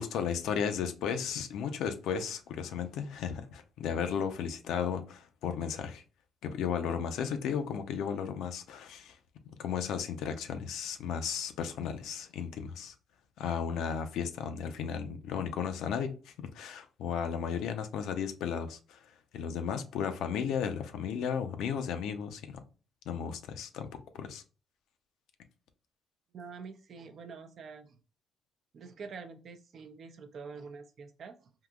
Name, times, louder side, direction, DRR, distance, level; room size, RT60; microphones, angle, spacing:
voice 1, 0.0-6.0 6.4-9.2 9.6-12.9 13.4-19.0 19.3-22.4 23.1-23.9 24.1-24.4, left 7 dB, 85° left, 0.5 m, -34 dB
voice 2, 26.3-28.0 28.7-31.5, right 5 dB, 60° right, 0.5 m, -46 dB
3.7 x 2.8 x 2.2 m
cardioid pair, 90°, 0 cm